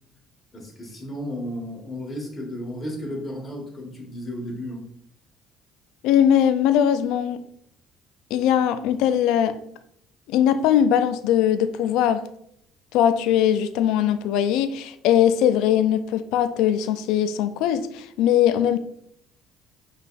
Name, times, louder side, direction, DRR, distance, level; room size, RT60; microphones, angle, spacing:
voice 1, 0.5-4.8, equal, 20° left, 1.6 m, -33 dB
voice 2, 6.0-7.4 8.3-9.6 10.3-12.3 12.9-18.8, left 10 dB, 80° left, 0.3 m, -20 dB
5.4 x 3.2 x 2.5 m
supercardioid pair, 95°, 0 cm